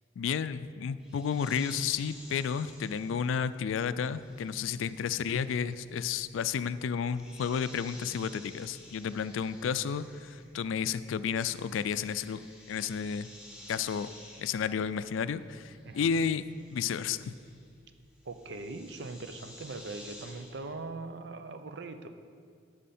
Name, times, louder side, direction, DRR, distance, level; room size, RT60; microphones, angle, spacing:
voice 1, 0.2-12.4 12.7-13.3 13.7-14.1 14.4-16.4 16.7-17.3, left 7 dB, 90° left, 14 dB, 0.3 m, -32 dB
sound 1, 1.0-10.7 11.0-20.7, left 1 dB, 5° right, 1.3 m, -53 dB
voice 2, 15.8-16.2 18.3-22.1, right 3 dB, 60° right, 8 dB, 0.5 m, -41 dB
11.0 x 6.4 x 4.2 m, 2.2 s
head